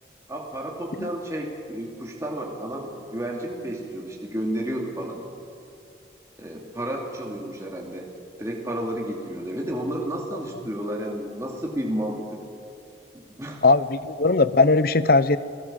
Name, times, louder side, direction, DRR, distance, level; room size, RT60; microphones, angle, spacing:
voice 1, 0.3-5.2 6.4-8.1 8.4-12.2 13.1-13.6, right 1 dB, 15° right, -1 dB, 2.5 m, -31 dB
voice 2, 13.6-15.4, left 3 dB, 55° left, 15 dB, 0.8 m, -19 dB
29.5 x 18.5 x 7.5 m, 2.5 s
head